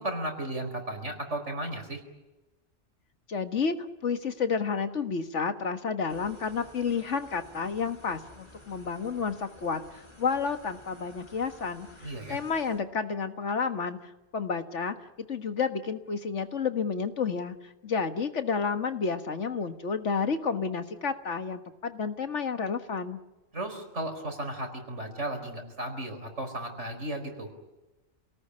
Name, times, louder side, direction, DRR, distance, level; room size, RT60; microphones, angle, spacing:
voice 1, 0.0-2.0 12.0-12.4 23.5-27.5, right 1 dB, 85° right, 5 dB, 5.0 m, -35 dB
voice 2, 3.3-3.7 4.0-9.8 10.2-17.6 17.8-23.2, left 5 dB, 90° left, 8 dB, 1.8 m, -30 dB
sound 1, 6.1-12.8, left 1 dB, 25° left, 4.3 m, -53 dB
28.0 x 18.5 x 9.8 m, 1.1 s
omnidirectional pair, 1.2 m